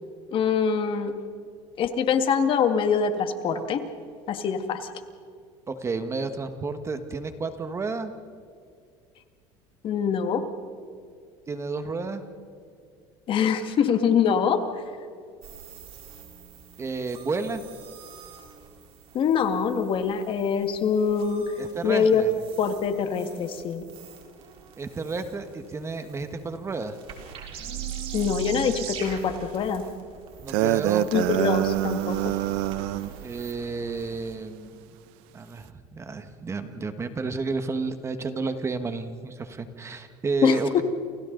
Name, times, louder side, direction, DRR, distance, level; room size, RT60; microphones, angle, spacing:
voice 1, 0.3-1.1 1.8-3.8 4.3-4.9 9.8-10.4 13.3-14.6 19.1-21.4 21.8-22.2 22.6-23.9 28.1-29.8 31.1-32.3 40.4-40.8, left 7 dB, 45° left, 7 dB, 1.9 m, -24 dB
voice 2, 5.7-8.1 11.5-12.2 16.8-17.6 21.6-22.3 24.8-27.0 30.4-31.1 33.2-34.9 35.3-40.8, right 4 dB, 20° right, 8 dB, 1.4 m, -31 dB
sound 1, 15.4-34.3, right 8 dB, 50° right, 3.9 m, -42 dB
sound 2, 30.5-33.1, right 14 dB, 80° right, 0.9 m, -25 dB
29.5 x 28.5 x 3.9 m, 2.3 s
cardioid pair, 125°, 12 cm